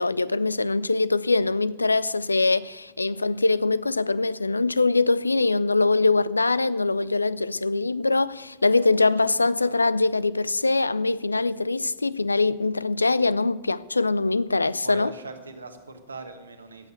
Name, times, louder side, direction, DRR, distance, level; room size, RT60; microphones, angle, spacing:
voice 1, 0.0-15.1, left 3 dB, 80° left, 0.4 m, -23 dB
voice 2, 8.8-9.9 14.8-16.9, right 3 dB, 75° right, 1.4 m, -41 dB
14.5 x 8.3 x 7.8 m
figure-of-eight pair, 90°, 0 cm